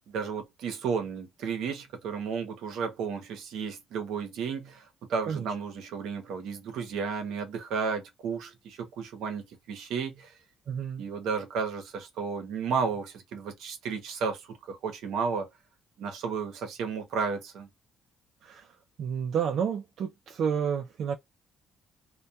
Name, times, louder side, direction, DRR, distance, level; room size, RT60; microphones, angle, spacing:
voice 1, 0.1-10.3 11.0-15.5 16.0-17.7, right 5 dB, 80° right, 0.7 m, -33 dB
voice 2, 10.7-11.0 18.4-21.2, right 7 dB, 65° right, 0.4 m, -31 dB
2.2 x 2.2 x 2.6 m
cardioid pair, 95°, 0 cm